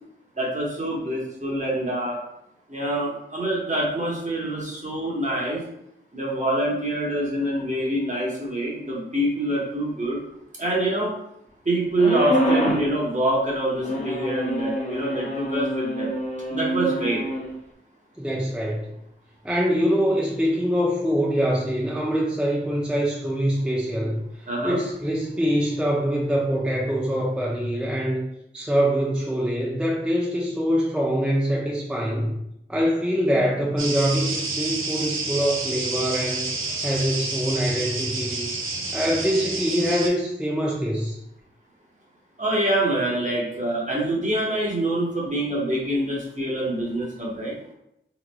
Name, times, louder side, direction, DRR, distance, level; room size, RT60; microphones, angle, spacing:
voice 1, 0.4-2.2 2.7-5.6 6.1-10.2 10.6-11.1 11.6-16.1 16.5-17.2 24.5-24.8 42.4-47.5, right 1 dB, 35° right, -4 dB, 1.1 m, -25 dB
sound 1, 12.0-12.9 13.8-17.5, equal, 35° left, 0.7 m, -26 dB
voice 2, 18.2-18.9 19.4-28.2 28.5-32.4 32.7-36.5 36.8-41.2, equal, 5° right, -4 dB, 0.5 m, -24 dB
sound 2, 33.8-40.1, right 3 dB, 90° right, 0.6 m, -29 dB
3.5 x 3.1 x 2.2 m, 0.81 s
wide cardioid pair, 70°, 21 cm